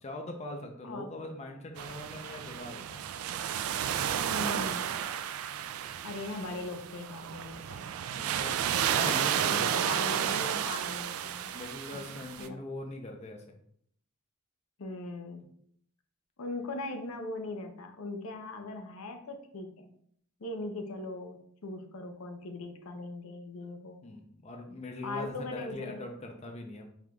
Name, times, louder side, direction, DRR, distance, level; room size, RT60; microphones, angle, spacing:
voice 1, 0.0-3.0 8.1-8.5 8.9-9.7 11.5-13.5 24.0-26.9, left 2 dB, 30° left, 3 dB, 0.5 m, -41 dB
sound 1, 1.8-12.5, right 9 dB, 75° right, 0.3 m, -32 dB
voice 2, 4.3-4.9 6.0-7.9 9.5-11.5 12.1-12.6 14.8-15.5 16.4-19.9 20.4-24.0 25.0-26.0, left 2 dB, 85° left, 5 dB, 0.7 m, -40 dB
4.8 x 3.7 x 2.3 m, 0.67 s
head